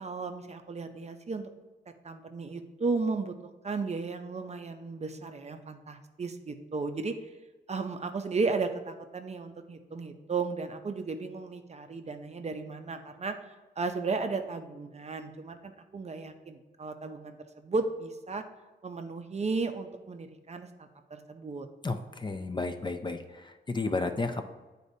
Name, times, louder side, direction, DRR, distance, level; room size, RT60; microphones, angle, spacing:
voice 1, 0.0-1.5 2.0-3.3 3.6-7.2 7.7-13.4 13.8-18.4 18.8-21.7, right 4 dB, 35° right, 7 dB, 0.5 m, -34 dB
voice 2, 21.8-24.4, left 3 dB, 25° left, 7 dB, 0.4 m, -32 dB
9.4 x 4.2 x 2.7 m, 1.2 s
wide cardioid pair, 110°, 19 cm